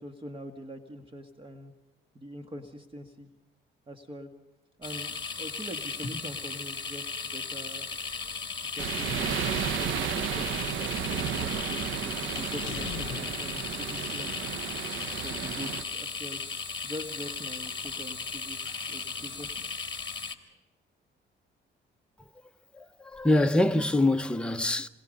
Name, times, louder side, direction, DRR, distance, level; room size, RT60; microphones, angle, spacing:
voice 1, 0.0-1.7 2.1-3.3 3.9-4.3 4.8-7.9 8.2-8.3 8.6-9.4 9.8-14.6 15.2-16.4 16.8-18.6 18.9-19.5, equal, 25° right, 1.8 m, -43 dB
sound 1, 4.8-20.3, left 5 dB, 25° left, 2.6 m, -36 dB
sound 2, 8.8-15.8, right 8 dB, 80° right, 1.2 m, -33 dB
sound 3, 12.5-14.6, left 12 dB, 75° left, 0.8 m, -43 dB
voice 2, 22.8-24.9, left 1 dB, 5° left, 0.9 m, -25 dB
28.5 x 22.0 x 5.4 m
cardioid pair, 90°, 20 cm